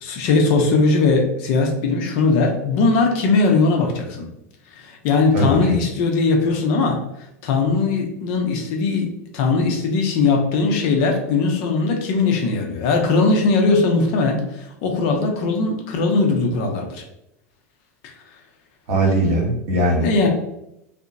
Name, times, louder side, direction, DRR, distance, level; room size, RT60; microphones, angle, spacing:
voice 1, 0.0-4.3 4.7-7.0 7.4-17.0 20.0-20.3, left 3 dB, 55° left, 2 dB, 0.6 m, -19 dB
voice 2, 5.3-5.8 18.9-20.1, right 1 dB, 60° right, -1 dB, 0.9 m, -19 dB
2.8 x 2.1 x 2.3 m, 0.83 s
figure-of-eight pair, 85°, 8 cm